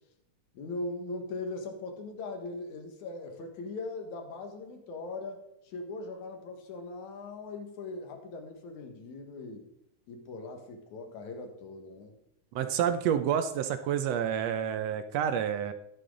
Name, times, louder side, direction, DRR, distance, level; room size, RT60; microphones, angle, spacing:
voice 1, 0.5-9.7 10.1-12.2, left 3 dB, 75° left, 4 dB, 3.0 m, -40 dB
voice 2, 12.5-15.7, right 9 dB, 70° right, 9 dB, 1.7 m, -29 dB
13.5 x 11.0 x 3.9 m, 0.78 s
omnidirectional pair, 3.4 m